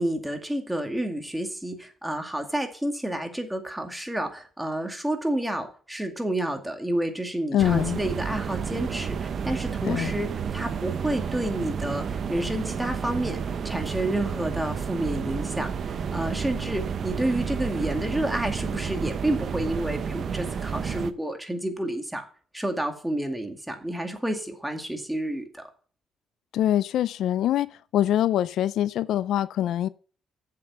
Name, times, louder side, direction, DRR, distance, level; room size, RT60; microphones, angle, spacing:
voice 1, 0.0-13.4 13.6-15.7 16.1-22.2 22.5-25.6, right 1 dB, 5° right, 2.3 m, -30 dB
voice 2, 7.5-8.0 9.8-10.1 26.5-27.7 27.9-29.9, left 11 dB, 80° left, 0.4 m, -24 dB
sound 1, 7.6-21.1, right 6 dB, 55° right, 0.8 m, -31 dB
7.8 x 7.5 x 5.7 m
cardioid pair, 90°, 0 cm